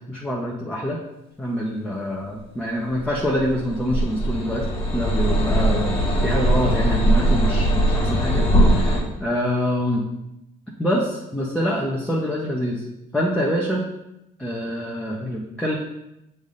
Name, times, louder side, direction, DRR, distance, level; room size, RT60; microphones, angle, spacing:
voice 1, 0.1-1.0 1.4-4.7 4.9-5.9 6.2-10.0 10.8-12.8 13.1-13.9 14.4-15.8, equal, 5° left, -3 dB, 1.0 m, -25 dB
sound 1, 2.9-9.0, right 1 dB, 35° left, 1.8 m, -20 dB
7.0 x 3.5 x 4.0 m, 0.87 s
cardioid pair, 95°, 15 cm